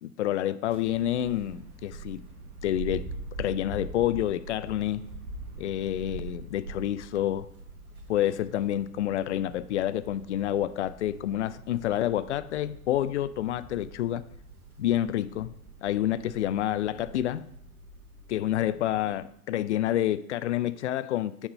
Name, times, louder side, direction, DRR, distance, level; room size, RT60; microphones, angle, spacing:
voice 1, 0.0-2.2 2.6-3.0 3.4-5.1 5.6-7.5 8.1-14.2 14.8-15.5 15.8-17.5 18.3-21.5, left 12 dB, 50° left, 0.5 m, -28 dB
sound 1, 0.6-19.3, right 3 dB, 70° right, 1.3 m, -44 dB
8.9 x 3.6 x 5.3 m
figure-of-eight pair, 95°, 45 cm